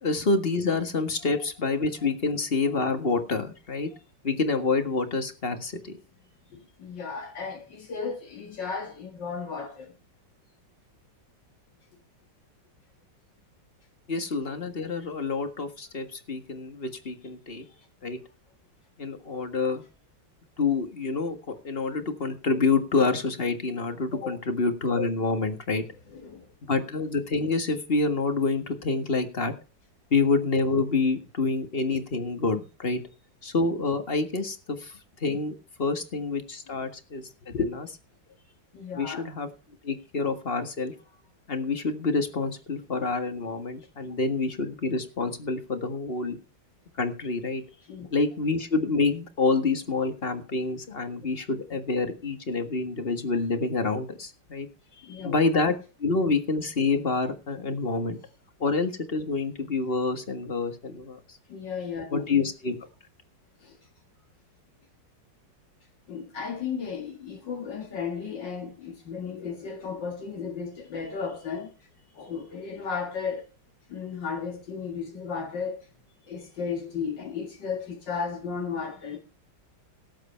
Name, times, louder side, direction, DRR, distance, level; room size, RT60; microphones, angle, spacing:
voice 1, 0.0-3.9 4.2-5.9 14.1-17.6 18.0-18.2 19.0-19.8 20.6-25.8 26.7-29.5 30.1-33.0 33.4-34.9 35.2-37.5 39.0-39.5 39.8-40.9 41.5-46.4 47.0-47.6 48.1-54.7 55.2-55.7 56.0-58.2 58.6-61.2 62.1-62.8, left 3 dB, 35° left, 1.8 m, -27 dB
voice 2, 6.5-9.9 17.5-17.7 24.1-24.4 26.1-26.5 37.5-37.7 38.7-39.3 47.9-48.1 54.9-55.3 61.5-62.2 63.6-63.8 66.1-71.7 72.1-73.5 73.9-75.8 76.3-79.2, left 5 dB, 75° left, 2.4 m, -34 dB
17.5 x 8.1 x 4.4 m
omnidirectional pair, 2.0 m